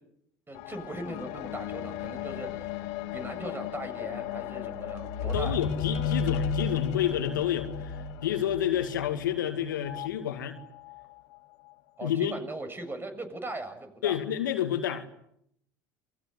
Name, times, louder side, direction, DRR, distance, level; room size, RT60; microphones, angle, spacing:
voice 1, 0.5-2.7 3.1-5.7 12.0-14.2, right 2 dB, 20° right, 7.2 m, -39 dB
sound 1, 0.6-10.1 10.9-11.0, left 7 dB, 70° left, 2.1 m, -34 dB
voice 2, 5.3-10.6 12.0-12.3 14.0-15.1, left 10 dB, 85° left, 2.3 m, -29 dB
28.0 x 21.5 x 8.2 m
hypercardioid pair, 70°, 10 cm